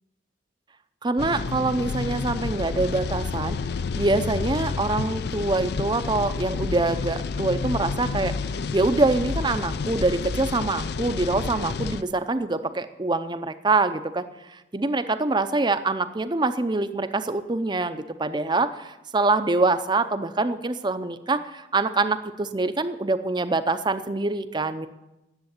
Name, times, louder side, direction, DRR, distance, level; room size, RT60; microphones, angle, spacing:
voice 1, 1.0-3.6 4.0-8.3 8.7-14.2 14.5-24.9, right 3 dB, 25° right, 11 dB, 0.5 m, -25 dB
sound 1, 1.2-12.0, left 4 dB, 55° left, 0.4 m, -30 dB
10.5 x 7.5 x 8.9 m, 0.97 s
head